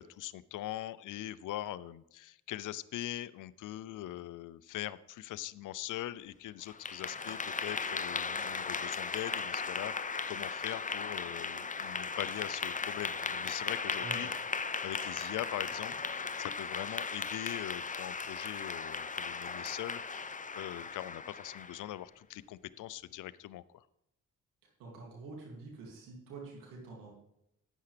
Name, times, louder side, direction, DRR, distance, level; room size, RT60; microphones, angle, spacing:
voice 1, 0.0-14.3 14.8-15.9 16.2-23.8, left 14 dB, 70° left, 18 dB, 0.5 m, -42 dB
Clapping / Applause, 6.6-21.9, left 5 dB, 25° left, 0.6 m, -37 dB
voice 2, 24.8-27.1, right 3 dB, 85° right, -1 dB, 2.7 m, -46 dB
11.0 x 9.2 x 3.4 m, 0.81 s
hypercardioid pair, 45°, 33 cm